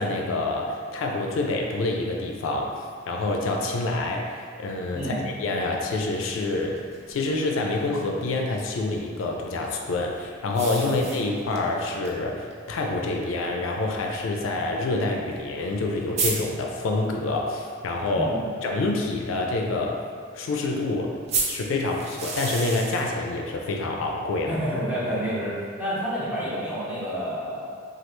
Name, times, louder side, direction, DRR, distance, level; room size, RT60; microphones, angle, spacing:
voice 1, 0.0-6.8 7.1-18.3 18.6-20.0 20.3-21.1 21.5-24.6, left 2 dB, 75° left, 1 dB, 0.4 m, -27 dB
sound 1, 5.9-8.0 10.5-11.7 12.0-12.1 12.5-12.6 13.5-13.6 15.4-15.5 15.7-15.8 16.2-16.4 21.3-23.1, right 4 dB, 35° right, 0.4 m, -31 dB
voice 2, 18.1-18.5 24.5-27.7, equal, 10° right, -10 dB, 0.8 m, -29 dB
3.2 x 2.3 x 3.0 m, 2.1 s
head